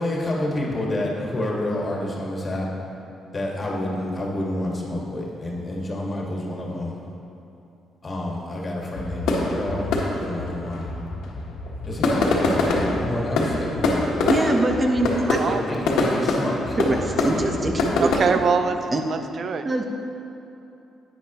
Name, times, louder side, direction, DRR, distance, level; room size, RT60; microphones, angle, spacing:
voice 1, 0.0-2.7 3.3-7.0 8.0-11.0 11.8-14.2 15.5-16.8, left 1 dB, 35° left, -2 dB, 1.8 m, -28 dB
sound 1, 8.9-18.2, left 2 dB, 85° left, 1.3 m, -25 dB
voice 2, 14.3-15.4 16.8-18.1 18.9-19.0 19.6-19.8, right 2 dB, 30° right, 3 dB, 1.0 m, -23 dB
voice 3, 18.0-19.7, right 5 dB, 55° right, 8 dB, 0.5 m, -24 dB
10.5 x 9.3 x 3.0 m, 2.9 s
cardioid pair, 90°, 0 cm